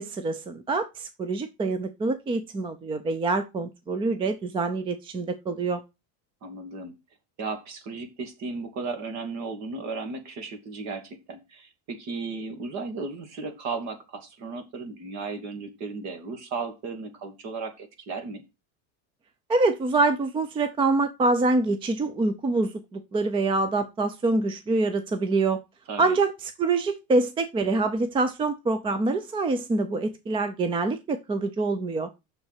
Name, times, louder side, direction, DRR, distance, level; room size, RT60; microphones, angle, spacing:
voice 1, 0.0-5.8 19.5-25.6 26.0-32.1, right 3 dB, 15° right, 0.4 m, -25 dB
voice 2, 6.4-7.0 7.4-18.4 25.9-26.2, right 4 dB, 45° right, 2.4 m, -35 dB
6.9 x 6.5 x 4.8 m
cardioid pair, 155°, 40 cm